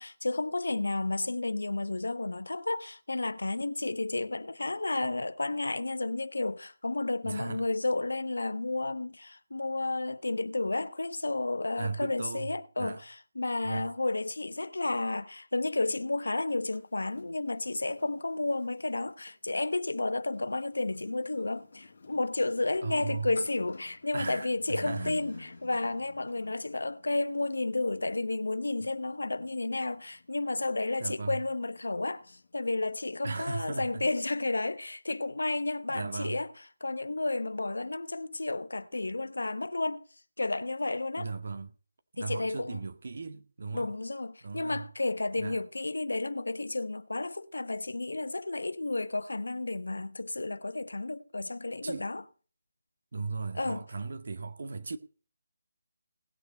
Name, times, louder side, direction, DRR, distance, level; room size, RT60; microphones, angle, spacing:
voice 1, 0.0-36.5 36.8-40.0 40.4-41.3 42.2-42.8 43.7-52.2 53.5-53.8, left 2 dB, 85° left, 1.0 m, -32 dB
voice 2, 7.2-7.6 11.8-12.5 12.8-13.0 13.6-13.9 22.8-23.3 24.1-25.2 31.0-31.4 33.2-34.0 35.9-36.4 41.2-41.7 42.1-43.9 44.4-44.9 45.4-45.6 51.8-52.1 53.1-55.0, right 4 dB, 65° right, 1.9 m, -37 dB
sound 1, 16.6-19.4 20.2-33.0, left 4 dB, 60° left, 1.9 m, -53 dB
18.5 x 6.6 x 5.3 m
figure-of-eight pair, 155°, 0 cm